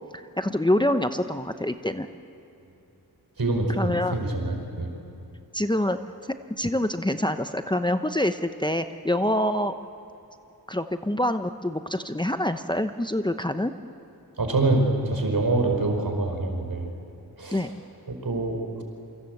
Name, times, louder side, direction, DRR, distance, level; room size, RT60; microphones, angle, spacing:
voice 1, 0.1-2.1 3.8-4.1 5.5-6.0 6.5-9.7 10.7-13.7 17.5-17.7, left 1 dB, 10° left, 8 dB, 0.8 m, -26 dB
voice 2, 3.4-4.9 14.4-16.9 17.4-17.7 18.1-18.8, right 2 dB, 65° right, 3 dB, 5.0 m, -25 dB
28.5 x 25.0 x 7.9 m, 2.8 s
wide cardioid pair, 85°, 38 cm